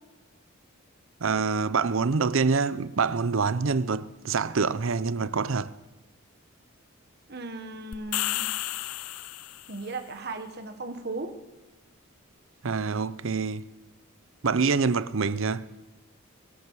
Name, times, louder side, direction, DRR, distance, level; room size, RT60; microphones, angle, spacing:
voice 1, 1.2-5.7 12.6-13.6 14.4-15.7, right 5 dB, 65° right, 0.6 m, -26 dB
voice 2, 7.3-8.5 9.7-11.4, right 3 dB, 50° right, 1.4 m, -36 dB
sound 1, 7.9-9.9, left 14 dB, 85° left, 0.5 m, -32 dB
22.0 x 12.5 x 4.8 m
head